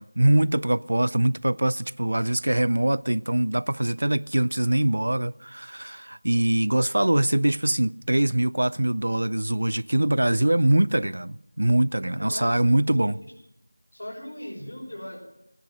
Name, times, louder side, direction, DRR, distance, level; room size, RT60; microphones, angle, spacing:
voice 1, 0.0-13.1, right 1 dB, 65° right, 0.4 m, -23 dB
voice 2, 12.0-12.6 12.9-13.3 13.9-15.2, left 1 dB, 70° left, 5.7 m, -39 dB
14.0 x 10.0 x 6.2 m
figure-of-eight pair, 170°, 0 cm